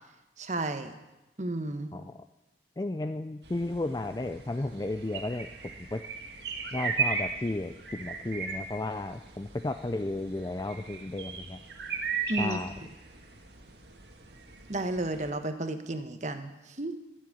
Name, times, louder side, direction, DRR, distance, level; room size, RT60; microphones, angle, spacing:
voice 1, 0.4-0.9 1.4-1.9 12.3-12.6 14.7-17.0, right 2 dB, 40° right, 8 dB, 1.1 m, -32 dB
voice 2, 2.8-5.5 5.8-6.0 6.7-11.6 12.4-12.7, left 2 dB, 20° left, 8 dB, 0.4 m, -33 dB
sound 1, 3.4-15.3, right 5 dB, 75° right, 1.8 m, -37 dB
13.0 x 7.7 x 9.9 m, 1.0 s
head